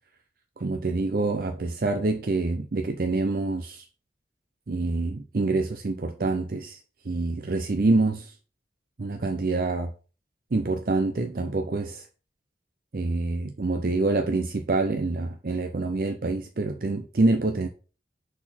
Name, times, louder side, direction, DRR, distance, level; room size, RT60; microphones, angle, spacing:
voice 1, 0.6-3.9 4.7-6.8 7.0-8.4 9.0-9.9 10.5-12.1 12.9-17.7, right 3 dB, 50° right, 0.5 m, -26 dB
6.1 x 4.1 x 4.3 m
head